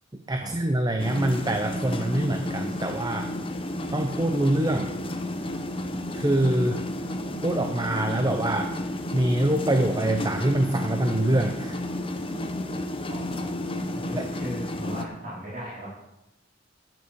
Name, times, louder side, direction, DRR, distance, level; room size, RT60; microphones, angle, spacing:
voice 1, 0.3-3.3 3.9-4.9 6.1-6.8 7.4-8.7 9.1-11.8 14.1-14.3, right 1 dB, 20° right, 5 dB, 0.8 m, -25 dB
sound 1, 1.0-15.0, left 1 dB, 30° left, 1.0 m, -32 dB
voice 2, 13.1-13.5 13.9-15.9, equal, 45° right, -7 dB, 4.9 m, -37 dB
11.0 x 9.4 x 5.3 m, 0.89 s
head